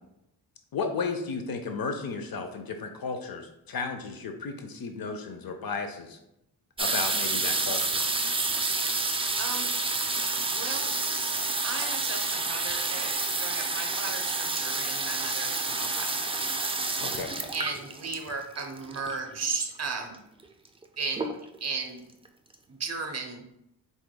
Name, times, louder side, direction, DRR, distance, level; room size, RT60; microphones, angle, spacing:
voice 1, 0.7-6.2 6.8-8.0 17.0-17.3, left 4 dB, 60° left, 6 dB, 0.6 m, -34 dB
sound 1, 6.8-19.3 20.1-20.2 20.4-20.8 21.1-21.7 22.3-22.4 22.5-22.6, right 3 dB, 15° right, 0.3 m, -29 dB
voice 2, 9.4-9.7 10.5-10.9 11.6-16.2 17.5-20.1 21.0-21.3 21.6-22.0 22.7-23.4, right 4 dB, 40° right, 3 dB, 0.9 m, -35 dB
4.7 x 4.0 x 2.2 m, 0.83 s
wide cardioid pair, 100°, 42 cm